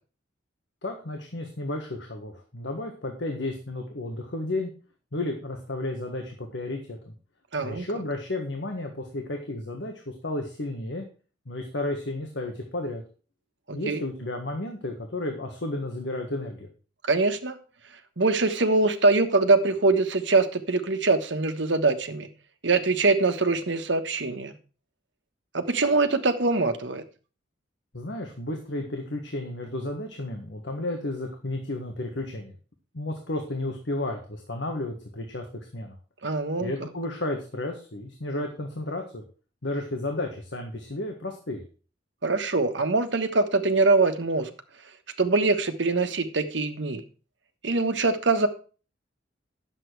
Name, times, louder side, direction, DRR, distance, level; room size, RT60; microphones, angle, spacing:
voice 1, 0.8-4.7 5.1-7.1 7.6-11.0 11.4-13.0 13.7-16.7 27.9-32.5 32.9-35.4 35.7-36.0 36.6-39.2 39.6-41.6, left 2 dB, 75° left, 3 dB, 1.6 m, -32 dB
voice 2, 7.5-7.9 13.7-14.0 17.1-17.6 18.2-22.3 22.6-24.5 25.5-27.0 36.2-36.7 42.2-44.5 45.2-47.0 47.6-48.5, right 3 dB, 75° right, 7 dB, 1.3 m, -23 dB
10.0 x 7.6 x 4.7 m, 0.37 s
head